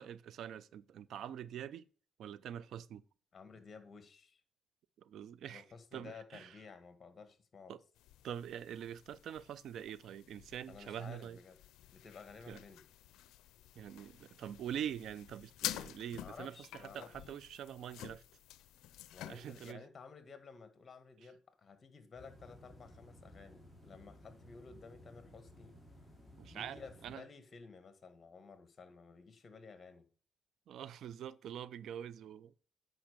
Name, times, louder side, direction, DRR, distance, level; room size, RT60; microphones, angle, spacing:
voice 1, 0.0-1.8 2.2-3.0 5.0-5.6 5.9-6.5 7.7-7.8 8.2-11.4 12.5-12.6 13.8-18.2 19.3-19.8 26.4-27.2 30.7-32.6, right 9 dB, 70° right, 0.5 m, -44 dB
voice 2, 3.3-4.4 5.5-7.8 10.7-11.6 11.9-12.8 16.2-17.1 19.1-25.7 26.5-30.1, left 5 dB, 35° left, 1.8 m, -54 dB
sound 1, 8.0-19.7, left 13 dB, 90° left, 0.5 m, -49 dB
sound 2, 22.1-27.2, equal, 5° right, 3.9 m, -58 dB
8.9 x 5.4 x 6.7 m
cardioid pair, 90°, 0 cm